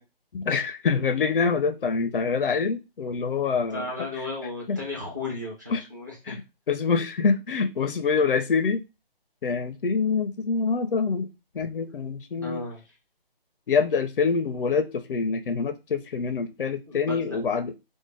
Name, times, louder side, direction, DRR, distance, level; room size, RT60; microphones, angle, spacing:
voice 1, 0.3-3.9 4.7-4.8 5.7-5.8 6.3-6.4 6.7-8.8 9.4-11.3 11.5-12.6 13.7-17.7, left 5 dB, 65° left, 0.4 m, -25 dB
voice 2, 3.7-6.4 11.5-11.6 12.4-12.8 16.9-17.4, left 2 dB, 20° right, 0.6 m, -34 dB
2.5 x 2.1 x 3.1 m
figure-of-eight pair, 170°, 30 cm